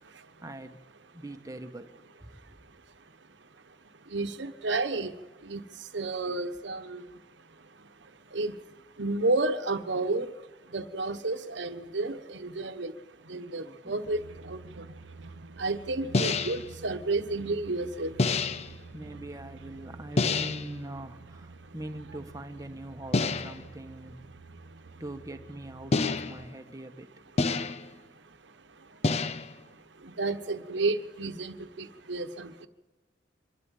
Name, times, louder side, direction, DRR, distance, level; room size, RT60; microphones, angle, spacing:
voice 1, 0.4-0.8 1.1-1.9 2.2-2.3 13.6-14.1 18.9-24.2 25.0-27.1, right 1 dB, 20° right, 8 dB, 1.3 m, -42 dB
voice 2, 4.1-5.1 5.4-5.6 5.9-7.0 8.3-8.6 9.0-10.3 10.7-12.9 13.3-14.6 15.6-18.1 30.2-32.5, right 2 dB, 75° right, 10 dB, 1.2 m, -31 dB
sound 1, 14.0-26.5, right 3 dB, 90° right, 0.9 m, -49 dB
sound 2, 16.1-16.7 18.2-18.8 20.2-20.7 23.1-23.7 25.9-26.5 27.4-28.0 29.0-29.6, left 3 dB, 35° left, 0.6 m, -28 dB
24.5 x 12.5 x 9.1 m, 1.2 s
head